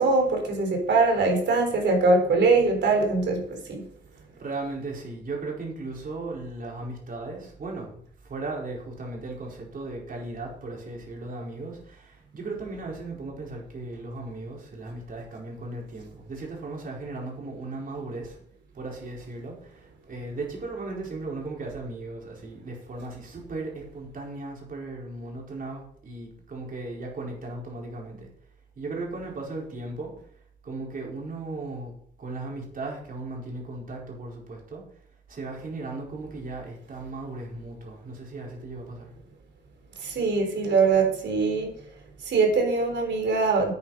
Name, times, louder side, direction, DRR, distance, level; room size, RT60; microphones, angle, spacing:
voice 1, 0.0-3.8 40.0-41.7 42.2-43.7, right 3 dB, 75° right, 2 dB, 4.1 m, -22 dB
voice 2, 4.1-18.4 18.7-28.3 28.8-30.1 30.6-34.8 35.3-39.1, right 2 dB, 50° right, -1 dB, 4.6 m, -36 dB
9.7 x 9.4 x 5.5 m, 0.63 s
wide cardioid pair, 135°, 19 cm